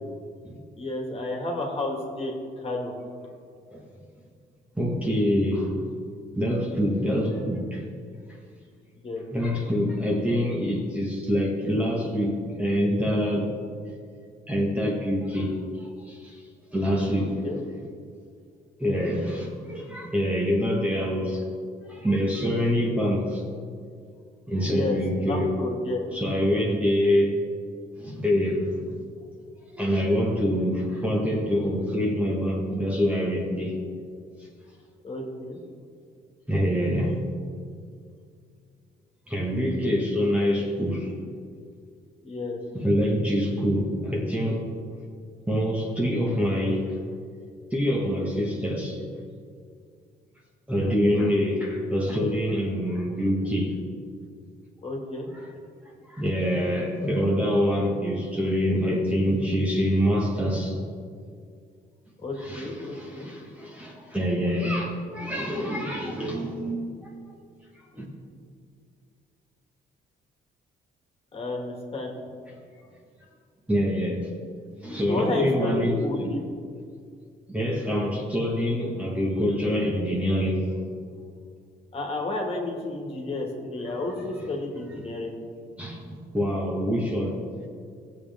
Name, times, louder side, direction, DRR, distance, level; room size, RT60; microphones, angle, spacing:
voice 1, 0.8-2.9 9.0-9.2 17.2-17.6 24.7-26.1 35.0-35.6 42.2-42.6 54.8-55.3 62.2-63.3 71.3-72.2 75.1-76.4 81.9-85.3, left 2 dB, 35° left, 0 dB, 2.0 m, -31 dB
voice 2, 4.8-5.8 6.3-7.9 9.3-13.5 14.5-16.4 16.7-17.4 18.8-21.4 21.9-23.4 24.5-25.6 26.1-27.4 28.0-29.0 29.7-33.8 36.5-37.2 39.3-41.1 42.7-44.7 45.5-46.9 47.7-49.0 50.7-53.7 55.4-55.5 56.1-60.8 62.4-67.1 67.9-68.0 73.7-74.3 74.8-76.3 77.5-80.6 85.8-87.4, equal, 10° right, -2 dB, 1.4 m, -25 dB
19.0 x 7.3 x 3.6 m, 2.2 s
cardioid pair, 140°, 17 cm